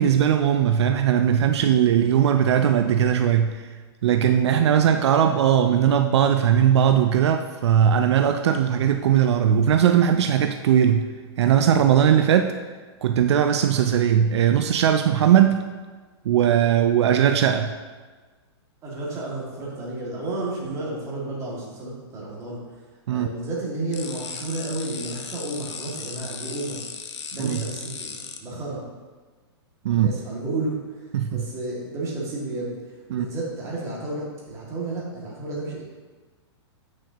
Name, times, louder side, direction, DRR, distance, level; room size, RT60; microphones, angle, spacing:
voice 1, 0.0-3.6 4.0-11.1 11.4-12.6 13.0-15.7 16.3-17.7 23.1-23.3 27.4-27.6 29.8-30.1 31.1-31.4 33.1-33.3, right 9 dB, 75° right, 7 dB, 0.4 m, -19 dB
voice 2, 4.3-5.1 18.8-22.6 23.1-26.8 27.3-28.8 29.8-35.8, right 2 dB, 20° right, -5 dB, 2.0 m, -32 dB
sound 1, 23.9-28.4, left 6 dB, 85° left, 0.8 m, -36 dB
8.4 x 6.2 x 2.9 m, 1.4 s
hypercardioid pair, 145°, 14 cm